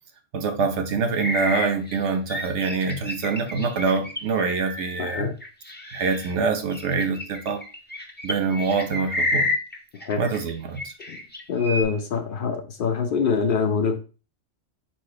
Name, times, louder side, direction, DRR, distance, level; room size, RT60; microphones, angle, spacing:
voice 1, 0.3-5.3 5.9-7.6 8.2-9.5 10.2-10.9, right 5 dB, 65° right, 6 dB, 1.0 m, -25 dB
sound 1, 1.2-6.3 6.7-10.5 10.8-11.8, left 2 dB, 15° left, 0.4 m, -30 dB
voice 2, 5.0-5.4 9.9-10.3 11.1-11.2 11.5-14.0, left 5 dB, 60° left, 7 dB, 0.6 m, -24 dB
4.1 x 2.5 x 4.8 m, 0.34 s
omnidirectional pair, 1.3 m